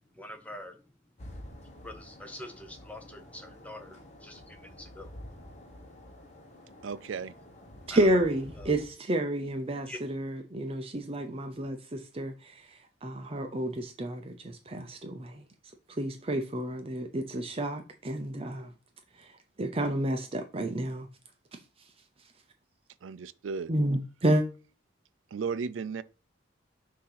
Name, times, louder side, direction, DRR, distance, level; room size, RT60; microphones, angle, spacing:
voice 1, 0.1-0.8 1.6-5.1 7.9-8.3 8.6-8.8 9.9-10.0, left 1 dB, 5° left, 0.8 m, -45 dB
sound 1, 1.2-8.9, left 1 dB, 35° left, 1.2 m, -49 dB
voice 2, 6.8-7.3 23.0-23.7 25.3-26.0, right 5 dB, 85° right, 0.4 m, -34 dB
voice 3, 7.9-12.6 13.0-15.4 16.0-18.7 19.6-21.1 23.7-24.4, right 1 dB, 30° right, 0.5 m, -30 dB
6.3 x 2.8 x 5.6 m
head